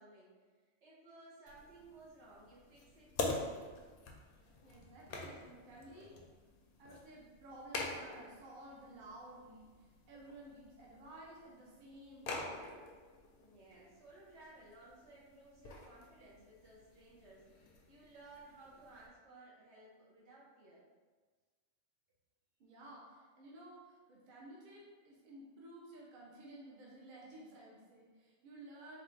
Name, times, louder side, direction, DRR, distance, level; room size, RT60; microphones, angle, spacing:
voice 1, 0.0-3.8 13.4-17.6 17.9-20.8, right 2 dB, 65° right, -6 dB, 1.3 m, -58 dB
sound 1, 1.5-19.1, left 3 dB, 60° left, 0.6 m, -47 dB
voice 2, 4.6-6.2 6.8-12.8 22.6-29.0, right 1 dB, 50° right, -4 dB, 0.7 m, -54 dB
3.9 x 2.4 x 3.2 m, 1.4 s
omnidirectional pair, 1.3 m